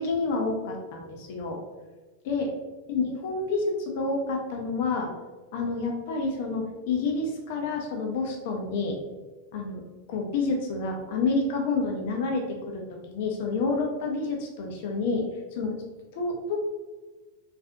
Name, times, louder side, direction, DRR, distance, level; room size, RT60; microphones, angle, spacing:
voice 1, 0.0-1.6 2.2-2.5 2.9-5.1 5.5-9.0 9.5-9.8 10.1-15.2 15.6-15.7 16.1-16.6, left 3 dB, 50° left, 1 dB, 0.5 m, -29 dB
3.5 x 2.4 x 2.6 m, 1.2 s
figure-of-eight pair, 90°, 0 cm